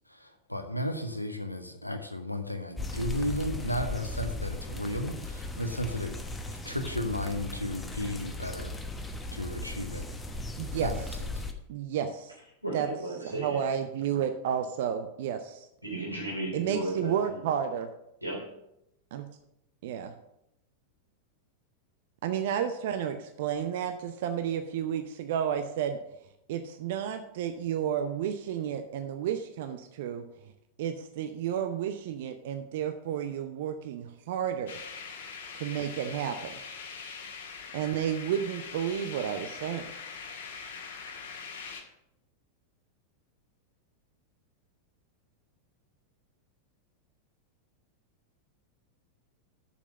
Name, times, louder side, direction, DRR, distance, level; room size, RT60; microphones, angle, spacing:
voice 1, 0.1-6.2 6.6-8.7 9.3-10.1 10.8-11.0, left 1 dB, 90° left, 6 dB, 1.0 m, -34 dB
sound 1, 2.8-11.5, left 2 dB, 10° left, 1.0 m, -37 dB
voice 2, 10.6-10.9 11.7-12.3 12.7-12.9 13.2-15.7 16.5-17.9 19.1-19.2 19.8-20.1 22.2-26.0 26.5-30.2 30.8-34.8 35.5-36.6 37.7-39.8, right 9 dB, 55° right, 8 dB, 0.7 m, -31 dB
voice 3, 12.6-13.6 15.8-17.4 18.2-18.4, right 1 dB, 90° right, -2 dB, 3.2 m, -35 dB
sound 2, 34.7-41.8, left 5 dB, 60° left, 1.4 m, -42 dB
7.1 x 6.9 x 6.7 m, 0.82 s
figure-of-eight pair, 90°, 0 cm